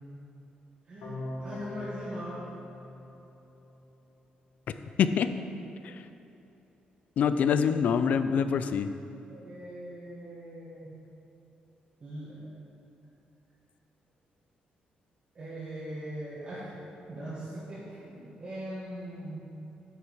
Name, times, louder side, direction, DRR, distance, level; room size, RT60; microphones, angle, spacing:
voice 1, 0.9-2.5 9.3-10.9 12.0-12.5 15.3-16.7 17.1-19.4, right 1 dB, 35° right, -10 dB, 1.7 m, -40 dB
sound 1, 1.0-4.0, left 1 dB, 75° left, 1.6 m, -42 dB
voice 2, 5.0-5.3 5.8-5.9 7.2-8.9, left 7 dB, 55° left, 10 dB, 0.4 m, -25 dB
9.3 x 6.6 x 4.8 m, 2.9 s
wide cardioid pair, 175°, 3 cm